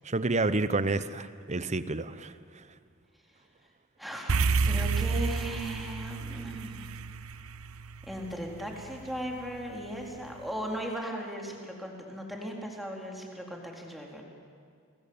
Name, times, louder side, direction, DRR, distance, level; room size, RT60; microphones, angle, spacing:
voice 1, 0.0-2.7, right 2 dB, 35° right, 13 dB, 0.9 m, -29 dB
voice 2, 4.0-6.9 8.1-14.2, equal, ahead, 0 dB, 4.0 m, -37 dB
sound 1, 4.3-8.8, right 4 dB, 70° right, 0.8 m, -29 dB
29.5 x 21.0 x 8.8 m, 2.2 s
head